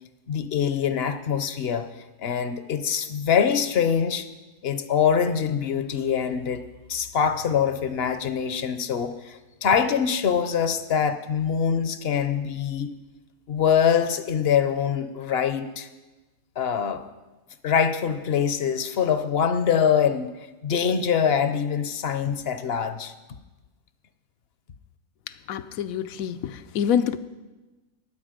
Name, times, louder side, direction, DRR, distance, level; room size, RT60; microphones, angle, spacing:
voice 1, 0.3-1.9 2.2-4.3 4.6-6.6 6.9-12.9 13.5-15.9 16.6-17.1 17.6-20.4 20.6-23.1, left 7 dB, 55° left, 11 dB, 0.8 m, -24 dB
voice 2, 25.5-27.2, left 8 dB, 80° left, 12 dB, 1.0 m, -26 dB
19.5 x 8.1 x 5.1 m, 1.2 s
omnidirectional pair, 1.5 m